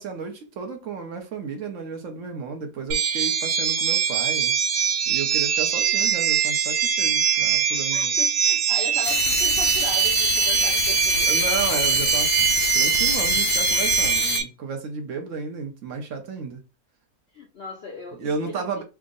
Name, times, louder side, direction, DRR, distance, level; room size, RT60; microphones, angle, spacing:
voice 1, 0.0-4.5 5.1-8.1 11.3-12.5 12.7-16.6 18.2-18.8, right 5 dB, 60° right, 0.9 m, -33 dB
sound 1, 2.9-14.4, right 8 dB, 85° right, 1.2 m, -22 dB
voice 2, 7.2-7.5 7.9-11.3 17.3-18.8, left 3 dB, 65° left, 0.6 m, -38 dB
sound 2, 9.0-14.4, left 8 dB, 85° left, 1.2 m, -26 dB
3.5 x 2.1 x 3.7 m
omnidirectional pair, 1.7 m